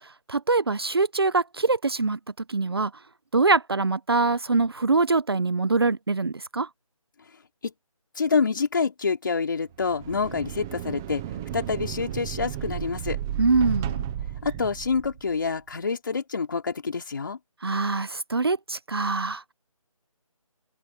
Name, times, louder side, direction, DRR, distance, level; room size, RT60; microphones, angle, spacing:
voice 1, 0.3-2.2 2.5-2.9 3.3-6.7 13.4-14.0 17.6-19.5, right 3 dB, 45° right, 0.9 m, -24 dB
voice 2, 8.2-11.2 11.5-13.2 14.4-17.4, left 5 dB, 35° left, 4.1 m, -27 dB
sound 1, 9.7-15.4, right 11 dB, 5° right, 0.8 m, -33 dB
open air
figure-of-eight pair, 175°, 18 cm